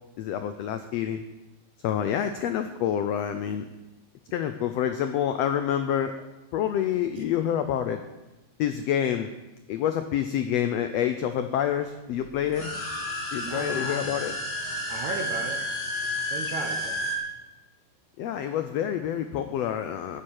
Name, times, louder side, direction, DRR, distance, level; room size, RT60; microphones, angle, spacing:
voice 1, 0.2-1.2 1.8-3.7 4.3-6.1 6.5-8.0 8.6-9.3 9.7-12.7 13.3-14.3 18.2-20.2, left 10 dB, 85° left, 8 dB, 1.4 m, -27 dB
sound 1, 12.4-17.2, left 1 dB, 40° left, 3.3 m, -31 dB
voice 2, 13.4-14.2 14.9-15.6 16.3-17.0, right 4 dB, 65° right, 3 dB, 2.4 m, -35 dB
11.0 x 7.6 x 8.8 m, 1.1 s
omnidirectional pair, 3.7 m